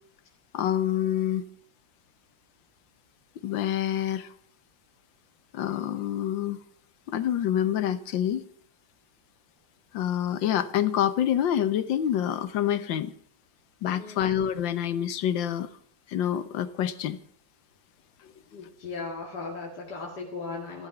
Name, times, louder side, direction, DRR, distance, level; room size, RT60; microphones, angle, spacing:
voice 1, 0.5-1.4 3.4-4.3 5.5-6.6 7.1-8.4 9.9-13.1 13.8-15.7 16.1-17.2, left 10 dB, 90° left, 13 dB, 1.7 m, -27 dB
voice 2, 13.9-14.3 18.5-20.9, left 4 dB, 65° left, -1 dB, 2.6 m, -37 dB
15.0 x 13.0 x 6.0 m, 0.62 s
omnidirectional pair, 2.0 m